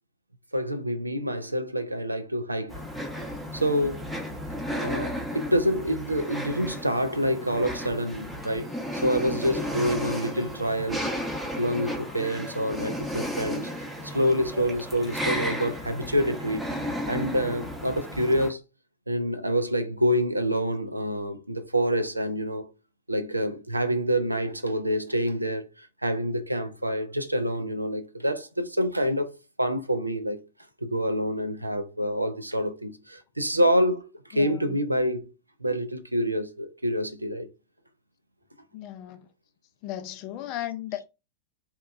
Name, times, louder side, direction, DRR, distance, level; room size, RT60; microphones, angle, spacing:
voice 1, 0.5-2.8 3.5-4.1 4.8-8.7 9.0-11.1 11.6-13.7 14.0-16.7 17.1-18.6 19.1-22.7 23.1-29.3 29.6-30.4 30.8-34.0 34.3-35.3 35.6-37.5, equal, 85° right, 0.3 m, -27 dB
sound 1, 2.7-18.5, equal, ahead, 0.8 m, -34 dB
voice 2, 34.3-34.8 38.7-39.3 39.8-41.0, left 12 dB, 40° left, 0.3 m, -36 dB
2.8 x 2.2 x 2.3 m
figure-of-eight pair, 90°, 0 cm